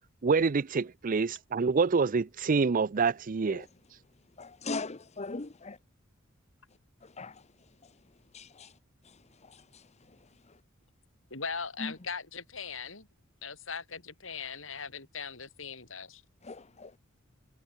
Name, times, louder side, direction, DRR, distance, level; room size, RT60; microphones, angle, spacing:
voice 1, 0.2-3.7, right 4 dB, 45° right, 0.5 m, -26 dB
voice 2, 4.4-5.8 7.2-7.3 8.3-8.7 16.5-16.6 16.8-16.9, left 3 dB, 35° left, 1.0 m, -38 dB
voice 3, 11.3-13.1 13.4-16.2, left 5 dB, 70° left, 5.6 m, -39 dB
head